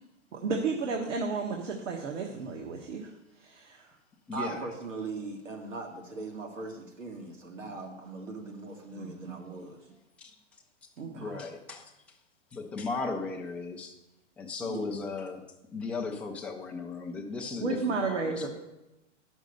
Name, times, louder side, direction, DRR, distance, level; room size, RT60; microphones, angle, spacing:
voice 1, 0.3-3.9 7.7-7.8 8.9-9.5 11.0-11.4 17.6-18.5, right 4 dB, 70° right, 1 dB, 1.4 m, -33 dB
voice 2, 4.3-9.8 14.6-15.0, right 3 dB, 90° right, 0 dB, 2.4 m, -40 dB
voice 3, 11.1-11.8 12.5-13.9 14.4-15.4 15.7-17.8 18.0-18.5, left 4 dB, 5° left, -1 dB, 0.4 m, -36 dB
9.7 x 6.2 x 6.7 m, 0.97 s
hypercardioid pair, 140°, 37 cm